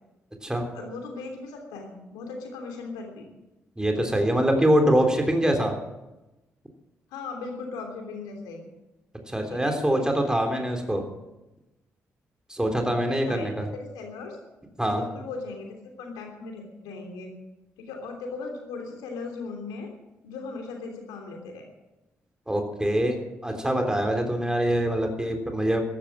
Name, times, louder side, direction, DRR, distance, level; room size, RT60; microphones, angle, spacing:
voice 1, 0.7-3.3 7.1-8.7 9.5-10.2 10.5-10.7 13.0-13.5 13.9-14.4 14.9-17.3 17.8-19.9 20.2-21.7, left 4 dB, 80° left, 2 dB, 3.1 m, -38 dB
voice 2, 3.8-5.7 9.3-11.0 12.5-13.7 14.8-15.0 22.5-25.8, right 1 dB, 10° right, 3 dB, 3.5 m, -24 dB
14.0 x 12.0 x 7.5 m, 1.0 s
hypercardioid pair, 40°, 7 cm